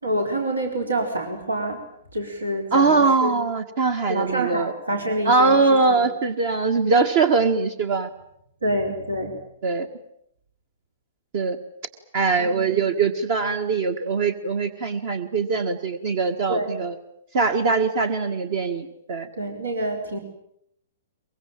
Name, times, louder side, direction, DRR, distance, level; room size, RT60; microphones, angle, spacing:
voice 1, 0.0-1.8 2.1-3.3 4.1-5.6 5.9-6.1 8.6-9.4 12.4-12.8 16.5-16.8 19.4-20.2, right 1 dB, 80° right, 3 dB, 4.5 m, -27 dB
voice 2, 2.7-4.7 5.2-8.1 9.6-9.9 11.3-11.6 12.1-17.0 17.3-19.3, right 4 dB, 45° right, 8 dB, 1.7 m, -22 dB
23.5 x 23.0 x 8.9 m, 0.75 s
figure-of-eight pair, 115°, 0 cm